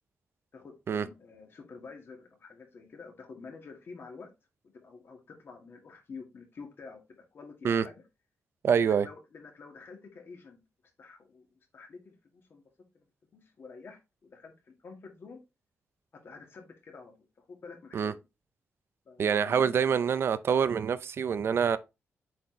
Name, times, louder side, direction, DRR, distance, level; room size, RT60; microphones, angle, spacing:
voice 1, 0.5-4.3 4.7-8.0 8.8-10.6 11.0-12.6 12.9-13.1 13.3-15.4 16.1-18.2 19.1-19.7, left 4 dB, 50° left, 2.0 m, -49 dB
voice 2, 8.6-9.1 17.9-18.1 19.2-21.8, right 7 dB, 55° right, 0.6 m, -26 dB
7.7 x 4.2 x 3.3 m
wide cardioid pair, 120°, 5 cm